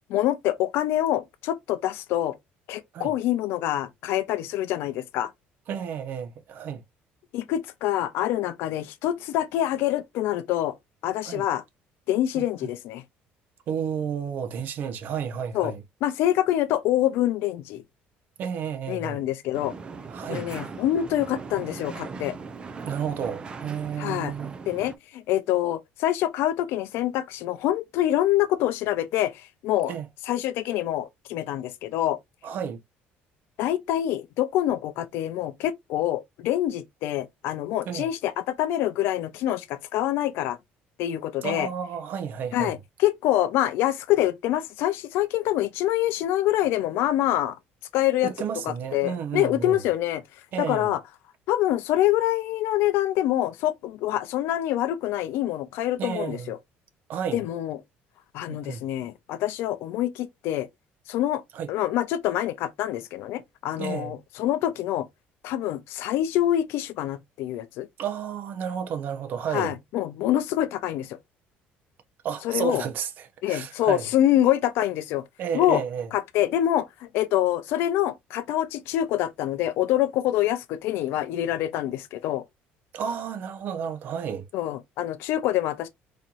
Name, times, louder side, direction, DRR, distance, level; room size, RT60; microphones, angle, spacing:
voice 1, 0.1-2.3 2.7-5.3 7.3-10.7 11.0-11.6 12.1-13.0 15.5-15.7 16.0-17.8 18.9-19.7 20.3-22.4 24.0-24.3 24.7-29.9 30.3-32.2 33.6-40.6 41.0-41.7 42.5-47.6 47.9-48.3 48.6-50.2 50.6-51.0 51.5-56.6 57.3-57.8 58.3-60.7 61.1-61.4 61.7-65.1 65.4-67.9 69.5-71.2 72.4-72.8 73.4-75.2 75.5-75.8 76.1-82.4 84.5-85.9, left 13 dB, 70° left, 0.6 m, -26 dB
voice 2, 5.7-6.8 11.2-11.5 13.7-15.8 18.4-19.2 20.1-20.5 22.9-24.6 29.9-30.1 32.4-32.8 37.9-38.1 41.4-42.8 48.2-49.8 50.5-50.9 56.0-56.5 57.1-57.4 58.5-58.8 61.5-61.7 63.8-64.1 68.0-69.7 72.2-74.1 75.4-76.1 82.9-84.5, right 7 dB, 50° right, 0.8 m, -31 dB
sound 1, 19.5-25.0, right 4 dB, 25° right, 0.4 m, -39 dB
4.2 x 2.8 x 2.5 m
cardioid pair, 155°, 4 cm